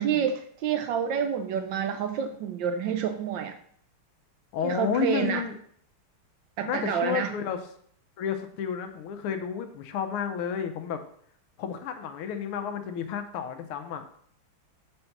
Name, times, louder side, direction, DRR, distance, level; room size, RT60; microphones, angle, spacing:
voice 1, 0.0-3.6 4.6-5.4 6.6-7.3, right 8 dB, 75° right, 8 dB, 1.1 m, -28 dB
voice 2, 4.5-5.5 6.6-7.6 8.2-11.0 11.6-14.0, left 8 dB, 80° left, 7 dB, 1.7 m, -31 dB
6.7 x 4.3 x 5.9 m, 0.62 s
omnidirectional pair, 2.4 m